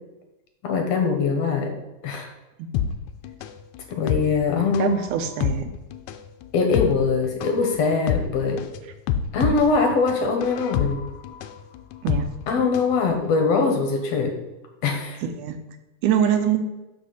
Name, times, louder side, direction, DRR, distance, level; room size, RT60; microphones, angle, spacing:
voice 1, 0.6-1.7 2.0-2.3 3.9-5.0 6.5-8.6 9.3-11.0 12.5-14.3 14.8-15.2, left 4 dB, 60° left, 3 dB, 2.2 m, -22 dB
sound 1, 2.7-13.0 13.3-13.4, left 8 dB, 80° left, 1.8 m, -28 dB
voice 2, 4.8-5.7 12.0-12.3 15.2-15.6 16.0-16.6, right 8 dB, 75° right, 8 dB, 2.2 m, -24 dB
12.0 x 5.3 x 4.1 m, 1.0 s
omnidirectional pair, 3.7 m